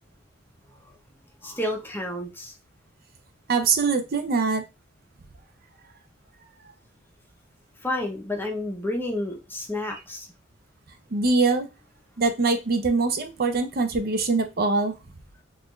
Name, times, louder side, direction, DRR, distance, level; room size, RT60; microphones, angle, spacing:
voice 1, 1.4-2.5 7.8-10.3, left 1 dB, 10° left, 2 dB, 0.7 m, -30 dB
voice 2, 3.5-4.6 11.1-11.7 12.2-14.9, right 4 dB, 50° right, 7 dB, 0.5 m, -23 dB
4.0 x 2.4 x 3.1 m, 0.26 s
head